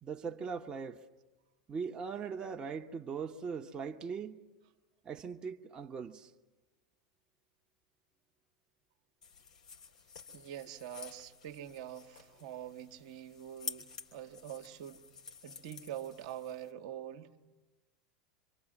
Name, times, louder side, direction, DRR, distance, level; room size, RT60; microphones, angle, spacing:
voice 1, 0.0-1.0 1.7-4.4 5.0-6.3, right 6 dB, 25° right, 1.1 m, -40 dB
sound 1, 9.2-16.7, left 6 dB, 75° left, 3.0 m, -50 dB
voice 2, 10.3-15.1 15.4-17.4, right 11 dB, 60° right, 1.2 m, -45 dB
26.5 x 25.0 x 7.3 m
figure-of-eight pair, 85°, 4 cm